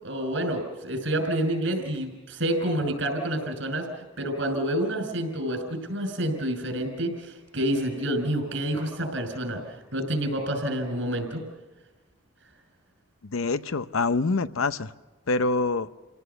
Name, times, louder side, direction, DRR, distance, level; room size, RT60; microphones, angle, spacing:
voice 1, 0.0-11.4, right 1 dB, 70° right, 6 dB, 5.8 m, -28 dB
voice 2, 13.3-14.9 15.3-15.9, left 3 dB, 85° left, 13 dB, 0.7 m, -25 dB
28.5 x 18.0 x 6.9 m, 1.2 s
head